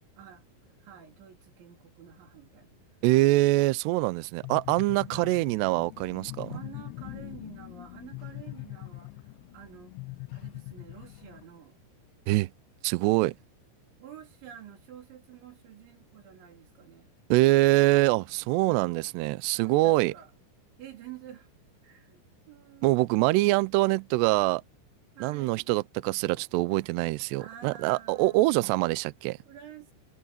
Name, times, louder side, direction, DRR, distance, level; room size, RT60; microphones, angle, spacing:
voice 1, 0.2-0.5 0.8-2.8 5.1-5.5 6.5-9.3 9.5-9.9 10.3-11.8 14.0-17.1 18.6-18.9 19.5-20.3 20.8-21.5 21.8-23.3 25.2-25.7 27.4-28.6 29.5-29.9, right 10 dB, 70° right, 6.2 m, -49 dB
voice 2, 3.0-6.6 12.3-12.5 12.8-13.4 17.3-20.1 22.8-24.6 25.2-29.4, right 19 dB, 85° right, 2.4 m, -24 dB
sound 1, 4.4-11.5, left 25 dB, 90° left, 2.4 m, -42 dB
omnidirectional pair, 5.6 m